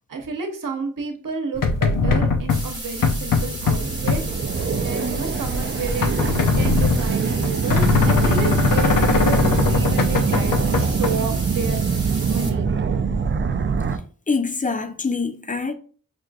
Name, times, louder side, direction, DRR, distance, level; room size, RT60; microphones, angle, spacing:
voice 1, 0.1-4.2 4.8-11.8 12.3-12.8, right 4 dB, 65° right, 0.9 m, -31 dB
sound 1, 1.6-11.1, left 4 dB, 65° left, 0.6 m, -21 dB
sound 2, 2.5-12.5, right 1 dB, 15° right, 1.3 m, -35 dB
sound 3, 3.6-14.0, right 5 dB, 35° right, 0.4 m, -24 dB
voice 2, 14.3-15.7, left 4 dB, 25° left, 0.5 m, -24 dB
5.8 x 2.5 x 2.3 m
wide cardioid pair, 75°, 34 cm